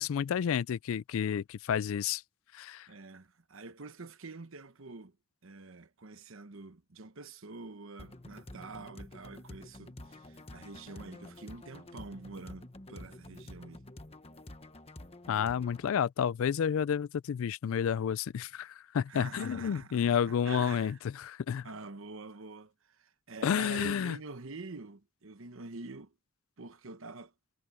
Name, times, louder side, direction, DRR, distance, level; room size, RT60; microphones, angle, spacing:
voice 1, 0.0-2.2 2.5-2.9 15.3-21.7 23.4-24.2, left 8 dB, 65° left, 0.3 m, -30 dB
voice 2, 2.9-5.2 5.4-13.9 19.1-21.0 21.6-26.1 26.6-27.3, right 3 dB, 65° right, 1.1 m, -46 dB
sound 1, 8.0-16.0, left 1 dB, 25° left, 1.2 m, -49 dB
head